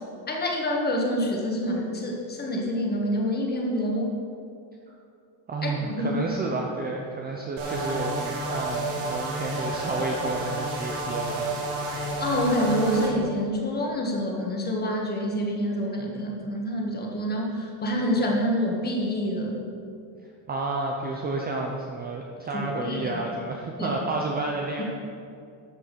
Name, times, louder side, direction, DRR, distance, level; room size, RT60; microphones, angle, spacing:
voice 1, 0.3-4.1 5.6-6.2 12.2-19.6 22.5-23.2 23.8-24.0 24.8-24.9, equal, 20° left, 0 dB, 1.6 m, -27 dB
voice 2, 5.5-11.5 20.5-24.8, right 3 dB, 20° right, 0 dB, 0.6 m, -31 dB
sound 1, 7.6-13.1, right 2 dB, 70° right, 3.1 m, -30 dB
13.0 x 6.0 x 6.7 m, 2.5 s
cardioid pair, 170°, 49 cm